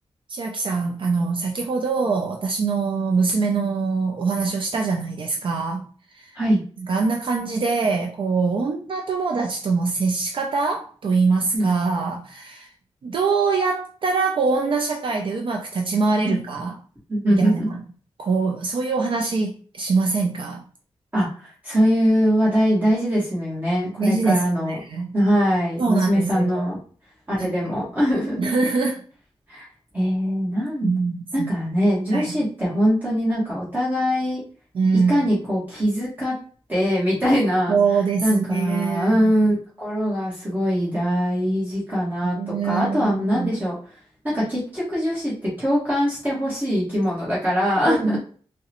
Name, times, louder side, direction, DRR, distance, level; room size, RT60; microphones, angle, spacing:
voice 1, 0.3-5.9 6.1-6.3 6.9-12.7 13.0-16.8 17.3-17.8 18.2-20.6 24.0-25.1 25.8-26.7 28.4-29.1 30.8-31.5 32.1-32.3 34.7-35.2 37.7-39.3 42.4-43.5 47.9-48.2, right 4 dB, 55° right, 0.4 m, -23 dB
voice 2, 17.1-17.7 21.1-24.8 25.1-26.8 27.3-28.4 29.5-29.7 29.9-30.9 31.3-34.4 34.9-36.4 36.7-37.8 38.2-43.7 44.2-48.2, equal, 15° right, 1.2 m, -22 dB
3.7 x 2.1 x 2.8 m
wide cardioid pair, 160°, 10 cm